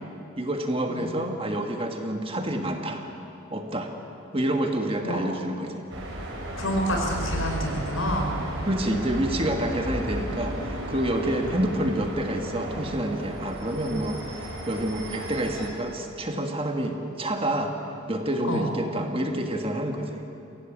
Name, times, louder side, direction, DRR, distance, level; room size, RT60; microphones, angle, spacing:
voice 1, 0.4-3.0 3.5-3.9 4.3-5.8 8.6-17.7 18.1-20.2, right 1 dB, 25° right, 4 dB, 1.6 m, -28 dB
sound 1, 5.9-15.7, right 1 dB, 60° right, 4.4 m, -34 dB
voice 2, 6.6-8.3 18.4-18.7, equal, 75° left, 1 dB, 4.7 m, -28 dB
23.0 x 17.0 x 8.9 m, 2.8 s
head